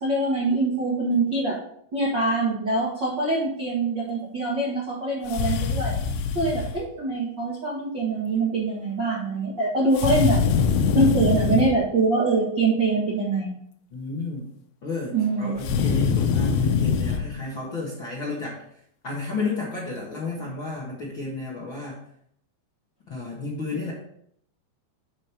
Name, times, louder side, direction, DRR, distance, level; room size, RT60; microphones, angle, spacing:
voice 1, 0.0-1.6 1.9-6.0 6.3-10.4 10.9-13.5 15.1-15.5, right 3 dB, 75° right, -4 dB, 1.0 m, -24 dB
sound 1, 5.3-6.8 10.0-11.8 15.6-17.2, left 6 dB, 85° left, 2.9 m, -23 dB
voice 2, 13.9-14.5 14.8-18.6 19.0-22.0 23.1-23.9, left 3 dB, 55° left, -5 dB, 1.4 m, -32 dB
8.8 x 5.2 x 4.4 m, 0.69 s
omnidirectional pair, 4.7 m